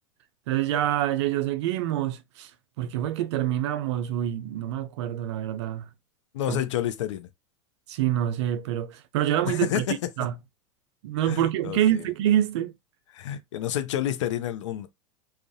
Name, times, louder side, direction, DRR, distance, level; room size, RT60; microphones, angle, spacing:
voice 1, 0.5-2.5 2.8-5.9 6.5-6.6 7.9-9.8 10.2-10.3 11.0-12.7, right 12 dB, 70° right, 0.4 m, -26 dB
voice 2, 6.3-7.3 9.4-10.0 11.2-12.0 13.1-14.9, left 11 dB, 75° left, 0.5 m, -29 dB
2.4 x 2.0 x 2.6 m
hypercardioid pair, 100°, 16 cm